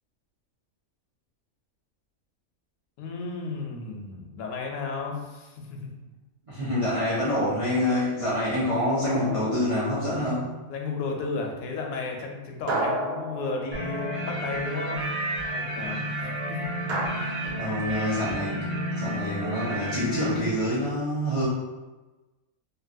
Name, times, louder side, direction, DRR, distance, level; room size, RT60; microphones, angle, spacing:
voice 1, 3.0-6.2 10.7-15.0 15.4-16.0 16.5-17.5, left 4 dB, 75° left, 0 dB, 1.0 m, -34 dB
voice 2, 6.5-10.5 17.4-18.6 18.9-21.5, left 1 dB, 45° right, -9 dB, 0.4 m, -26 dB
sound 1, 9.1-10.3 12.7-14.3 16.9-17.1, right 1 dB, 85° right, 1.1 m, -32 dB
sound 2, 13.7-20.4, right 1 dB, 60° right, 0.9 m, -31 dB
2.9 x 2.5 x 2.5 m, 1.1 s
omnidirectional pair, 1.5 m